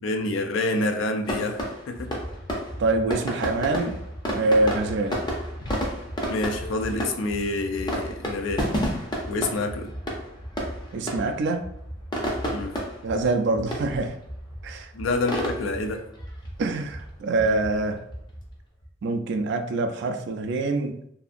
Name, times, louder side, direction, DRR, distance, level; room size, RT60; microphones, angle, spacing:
voice 1, 0.0-2.2 6.3-8.7 9.3-9.9 12.5-12.7 14.9-16.1, left 2 dB, 90° left, 6 dB, 0.4 m, -27 dB
sound 1, 1.2-18.9, equal, 25° left, 0.5 m, -32 dB
voice 2, 2.8-4.0 4.3-5.2 9.4-9.5 10.9-11.7 13.0-14.2 14.6-14.9 16.6-18.0 19.0-21.0, right 2 dB, 65° right, 7 dB, 0.3 m, -25 dB
2.6 x 2.4 x 2.4 m, 0.73 s
head